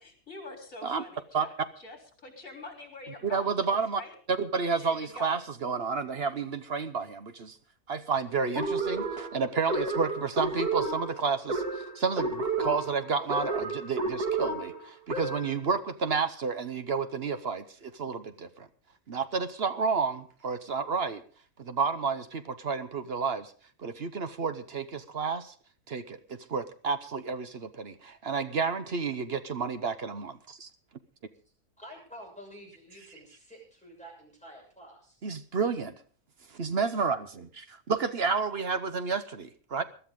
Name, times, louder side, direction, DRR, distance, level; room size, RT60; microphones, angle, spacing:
voice 1, 0.0-1.5 1.8-3.5 3.9-4.1 4.8-5.4, left 2 dB, 60° left, 3 dB, 4.0 m, -45 dB
voice 2, 3.3-4.0 4.3-7.6 7.9-18.7 19.1-21.2 21.6-23.5 23.8-25.5 25.9-30.7 35.2-35.9 36.5-39.8, right 5 dB, 45° right, 10 dB, 1.0 m, -31 dB
sound 1, 8.6-15.6, right 3 dB, 80° right, 2.8 m, -31 dB
voice 3, 31.8-35.2, equal, 5° left, -1 dB, 6.9 m, -49 dB
22.0 x 12.5 x 3.7 m, 0.42 s
omnidirectional pair, 1.6 m